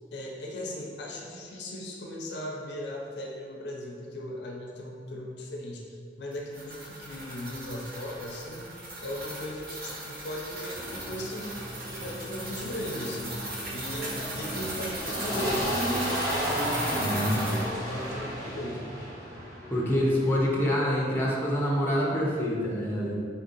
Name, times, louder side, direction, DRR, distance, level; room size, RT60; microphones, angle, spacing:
voice 1, 0.1-5.9 6.2-8.7 9.0-11.6 12.0-13.4 13.7-15.7 17.5-18.9, left 1 dB, 65° left, -1 dB, 0.5 m, -37 dB
sound 1, 6.3-17.7, right 1 dB, 55° right, 0.8 m, -38 dB
sound 2, 10.7-20.4, equal, 20° right, 1.0 m, -33 dB
voice 2, 16.9-17.4 19.7-23.1, equal, 10° left, -4 dB, 0.6 m, -26 dB
3.9 x 2.6 x 3.8 m, 2.2 s
head